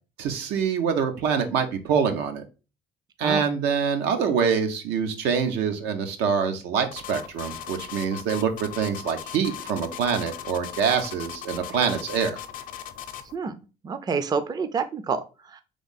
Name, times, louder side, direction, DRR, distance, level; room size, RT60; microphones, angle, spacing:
voice 1, 0.2-2.4 3.2-12.4, right 6 dB, 85° right, 6 dB, 0.9 m, -25 dB
sound 1, 6.9-13.3, left 10 dB, 55° left, 0.6 m, -38 dB
voice 2, 13.8-15.6, right 5 dB, 25° right, 11 dB, 0.4 m, -28 dB
3.6 x 3.4 x 4.0 m, 0.32 s
cardioid pair, 110°, 17 cm